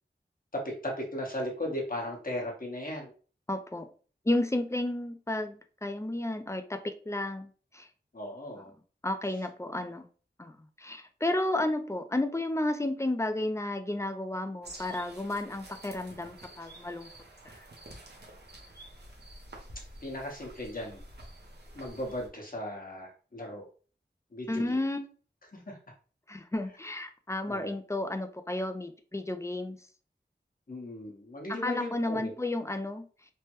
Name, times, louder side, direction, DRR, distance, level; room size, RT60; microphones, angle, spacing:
voice 1, 0.5-3.1 8.1-8.7 20.0-21.0 21.7-23.6 24.3-24.8 25.5-25.8 27.5-27.7 30.7-32.3, left 1 dB, 50° left, -1 dB, 1.0 m, -37 dB
voice 2, 3.5-3.9 4.3-7.9 9.0-10.1 10.4-17.1 17.5-17.6 24.5-25.0 26.3-29.8 31.5-33.0, left 1 dB, 15° left, 8 dB, 0.4 m, -32 dB
sound 1, 14.6-22.3, right 1 dB, 60° right, 0.7 m, -49 dB
3.2 x 2.1 x 2.9 m, 0.40 s
wide cardioid pair, 45°, 19 cm